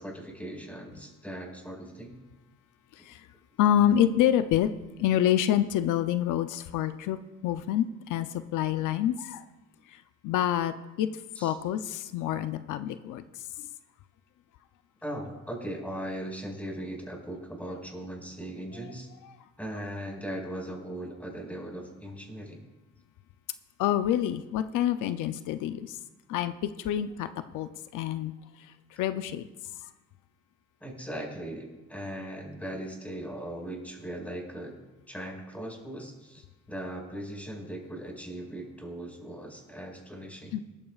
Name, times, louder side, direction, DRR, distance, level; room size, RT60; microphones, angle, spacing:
voice 1, 0.0-2.2 11.4-11.5 15.0-19.1 19.6-22.6 30.8-34.7 35.1-40.6, right 1 dB, 5° left, -1 dB, 5.2 m, -39 dB
voice 2, 3.0-3.3 3.6-4.7 5.0-9.4 9.9-13.7 19.2-19.4 23.8-26.0 26.3-27.3 27.5-28.3 28.6-29.4 40.5-40.6, left 11 dB, 85° left, 11 dB, 0.6 m, -27 dB
18.5 x 14.0 x 2.4 m, 1.0 s
cardioid pair, 90°, 30 cm